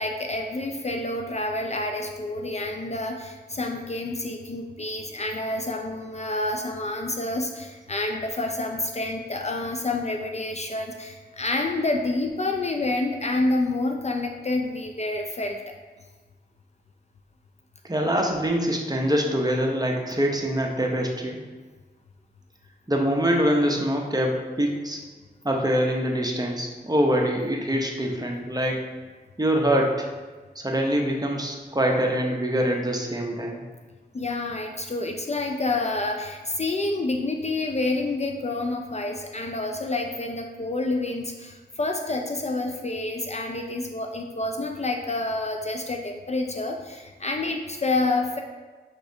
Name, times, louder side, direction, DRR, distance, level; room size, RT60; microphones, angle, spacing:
voice 1, 0.0-15.6 34.1-48.4, left 2 dB, 40° left, 3 dB, 0.4 m, -28 dB
voice 2, 17.9-21.4 22.9-25.0 25.4-28.9 29.4-30.1 30.6-33.6, equal, 20° right, 0 dB, 0.7 m, -24 dB
5.9 x 3.2 x 2.7 m, 1.3 s
wide cardioid pair, 50°, 18 cm